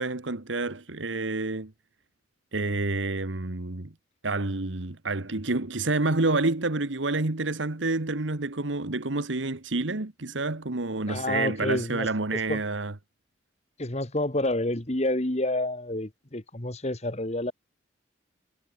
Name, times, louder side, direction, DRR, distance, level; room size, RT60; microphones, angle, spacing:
voice 1, 0.0-1.7 2.5-3.9 4.2-12.9, right 2 dB, 90° right, 1.6 m, -28 dB
voice 2, 11.1-12.1 12.5-12.6 13.8-17.5, left 1 dB, 35° left, 1.8 m, -29 dB
head